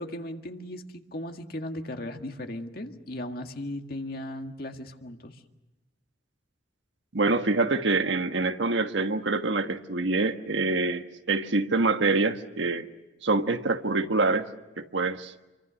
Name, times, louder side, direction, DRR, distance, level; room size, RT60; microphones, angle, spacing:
voice 1, 0.0-5.4, left 1 dB, 50° left, 1.9 m, -37 dB
voice 2, 7.1-12.9 13.2-14.5 14.8-15.3, right 3 dB, 75° right, 1.4 m, -25 dB
28.5 x 24.0 x 6.4 m
head